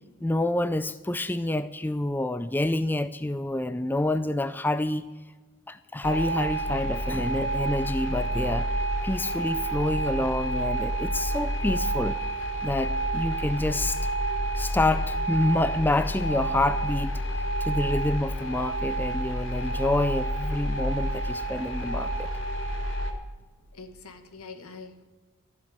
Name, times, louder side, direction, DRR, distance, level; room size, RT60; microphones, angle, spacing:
voice 1, 0.2-5.1 5.7-12.2 12.6-14.0 14.6-22.3, left 2 dB, 10° left, 13 dB, 0.3 m, -28 dB
sound 1, 6.0-23.1, right 1 dB, 60° left, 1.8 m, -29 dB
voice 2, 23.7-25.0, left 4 dB, 85° left, 8 dB, 1.5 m, -44 dB
14.5 x 7.6 x 9.0 m, 1.3 s
head